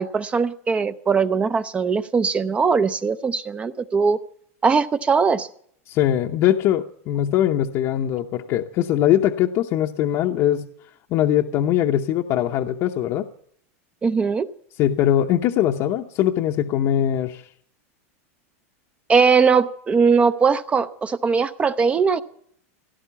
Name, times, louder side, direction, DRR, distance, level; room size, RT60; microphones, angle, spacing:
voice 1, 0.0-4.2 4.6-5.5 14.0-14.5 19.1-22.2, right 5 dB, 15° right, 13 dB, 0.5 m, -20 dB
voice 2, 5.9-10.7 11.1-13.3 14.8-17.5, left 11 dB, 40° left, 2 dB, 0.8 m, -21 dB
16.5 x 12.0 x 6.9 m, 0.66 s
supercardioid pair, 145°, 8 cm